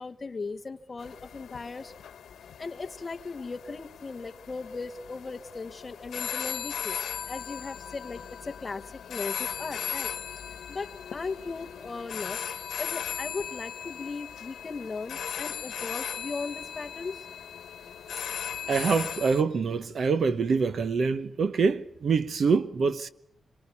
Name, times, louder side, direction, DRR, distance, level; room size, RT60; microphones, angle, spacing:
voice 1, 0.0-1.9 2.6-7.0 7.3-10.1 10.7-17.3, left 4 dB, 25° left, 1.1 m, -38 dB
sound 1, 1.0-19.4, left 8 dB, 85° left, 1.1 m, -38 dB
voice 2, 18.7-23.1, right 5 dB, 50° right, 1.0 m, -25 dB
26.5 x 23.5 x 8.4 m
wide cardioid pair, 170°, 0 cm